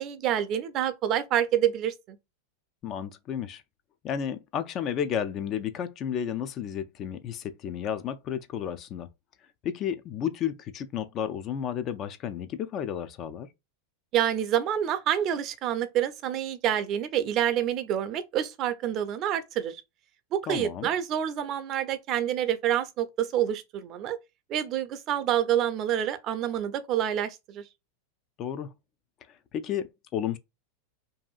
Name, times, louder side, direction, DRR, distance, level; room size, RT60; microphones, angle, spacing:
voice 1, 0.0-2.2 14.1-19.8 20.3-24.2 24.5-27.6, right 10 dB, 45° right, 0.4 m, -27 dB
voice 2, 2.8-3.6 4.0-9.1 9.6-13.5 20.5-20.9 28.4-28.7 29.3-30.4, left 9 dB, 40° left, 0.3 m, -32 dB
2.7 x 2.4 x 2.3 m
hypercardioid pair, 105°, 0 cm